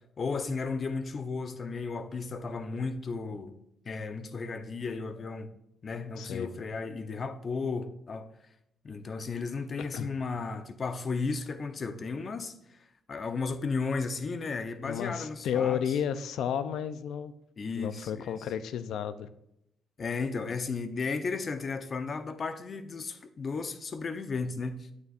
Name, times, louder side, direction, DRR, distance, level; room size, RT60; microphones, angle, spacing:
voice 1, 0.2-3.5 3.8-5.5 5.8-8.3 8.8-12.5 13.1-15.8 17.6-18.4 20.0-24.9, left 4 dB, 50° left, 0.8 m, -34 dB
voice 2, 6.2-6.5 9.8-10.1 14.8-17.3 17.7-19.3, left 8 dB, 80° left, 0.5 m, -32 dB
9.7 x 8.6 x 2.5 m
supercardioid pair, 65°, 0 cm